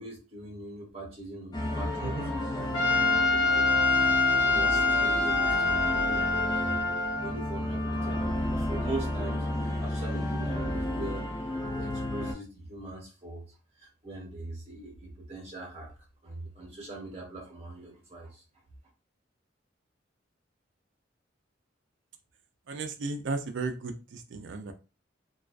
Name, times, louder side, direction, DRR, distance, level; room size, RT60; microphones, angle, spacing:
voice 1, 0.0-4.2 4.5-6.8 7.2-11.3 11.6-13.4 13.8-15.9 16.2-18.4, right 2 dB, 35° right, -2 dB, 1.0 m, -41 dB
sound 1, 1.5-12.3, left 1 dB, 25° left, 0.6 m, -32 dB
voice 2, 2.0-2.3 22.7-24.7, right 3 dB, 80° right, 7 dB, 0.4 m, -35 dB
Trumpet, 2.7-7.3, left 3 dB, 70° left, 0.5 m, -25 dB
2.3 x 2.2 x 2.4 m, 0.30 s
head